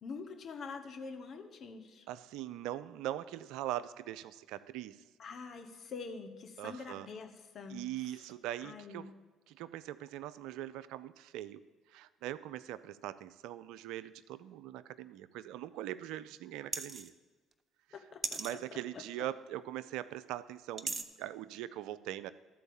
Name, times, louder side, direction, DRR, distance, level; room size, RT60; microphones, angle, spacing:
voice 1, 0.0-2.0 5.2-8.1 8.6-9.1 17.9-18.6 18.9-19.0, left 4 dB, 55° left, 5 dB, 1.1 m, -45 dB
voice 2, 2.1-5.0 6.6-7.1 7.7-9.1 9.5-11.6 11.9-17.1 18.4-22.3, right 13 dB, 70° right, 16 dB, 0.3 m, -41 dB
sound 1, 16.7-17.1 18.2-18.5 20.8-21.0, right 4 dB, 35° right, 0.7 m, -37 dB
13.0 x 4.5 x 7.0 m, 1.3 s
hypercardioid pair, 55°, 0 cm